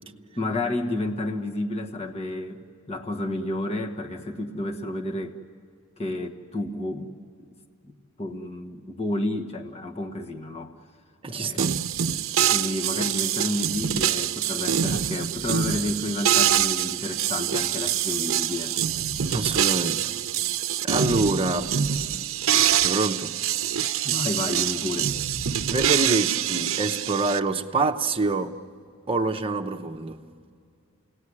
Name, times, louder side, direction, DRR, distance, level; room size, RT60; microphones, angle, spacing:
voice 1, 0.4-2.6 2.9-5.4 6.0-7.1 7.9-10.7 11.3-11.7 12.5-18.8 24.0-25.1, left 1 dB, 30° left, 1.4 m, -31 dB
voice 2, 11.2-11.7 19.3-20.1 20.8-21.8 22.7-23.3 25.7-28.6 29.1-30.2, right 3 dB, 25° right, 0.9 m, -26 dB
sound 1, 11.6-27.4, right 9 dB, 70° right, 0.7 m, -25 dB
29.0 x 18.5 x 9.8 m
head